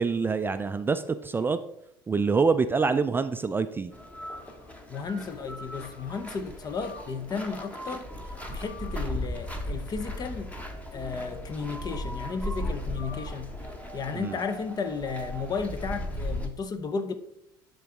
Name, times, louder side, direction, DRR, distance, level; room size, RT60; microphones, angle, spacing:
voice 1, 0.0-1.6 2.1-3.9 14.1-14.4, right 4 dB, 20° right, 0.4 m, -26 dB
sound 1, 3.9-16.5, left 1 dB, 15° left, 1.3 m, -37 dB
voice 2, 4.9-8.1 8.5-10.5 10.9-13.5 13.9-17.1, left 5 dB, 35° left, 0.8 m, -33 dB
11.5 x 3.9 x 3.5 m
hypercardioid pair, 75°, 11 cm